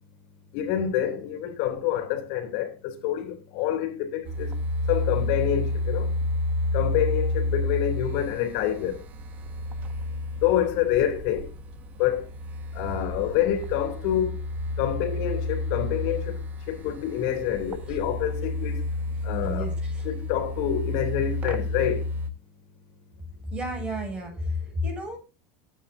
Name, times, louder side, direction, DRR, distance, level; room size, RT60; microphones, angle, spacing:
voice 1, 0.5-4.5 4.9-6.1 6.7-9.0 10.4-11.5 12.0-12.2 12.7-14.3 14.8-16.4 16.7-18.8 19.2-19.7 20.0-22.0, left 10 dB, 65° left, 3.1 m, -27 dB
sound 1, 4.2-22.3, left 2 dB, 35° right, 1.5 m, -30 dB
voice 2, 19.4-20.1 23.5-25.2, left 1 dB, 20° right, 7.1 m, -32 dB
19.0 x 8.9 x 2.7 m
supercardioid pair, 130°, 5 cm